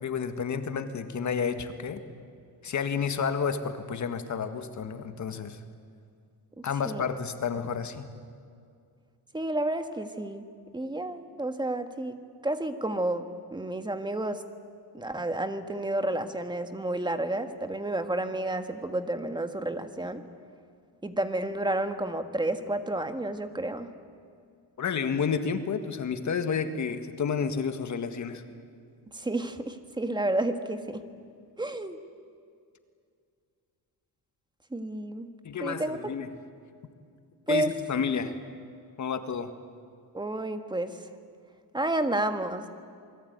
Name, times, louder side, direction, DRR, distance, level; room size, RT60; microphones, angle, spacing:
voice 1, 0.0-2.0 2.6-5.6 6.6-8.1 24.8-28.4 35.4-36.3 37.5-38.3 39.0-39.5, left 6 dB, 45° left, 8 dB, 1.8 m, -30 dB
voice 2, 9.3-10.5 10.7-12.2 12.4-14.4 14.9-20.2 21.0-23.9 29.1-31.0 31.6-32.0 34.7-35.3 35.6-36.0 37.5-37.7 40.1-41.1 41.7-42.7, right 1 dB, 10° right, 8 dB, 1.7 m, -30 dB
28.0 x 21.5 x 9.4 m, 2.3 s
cardioid pair, 135°, 39 cm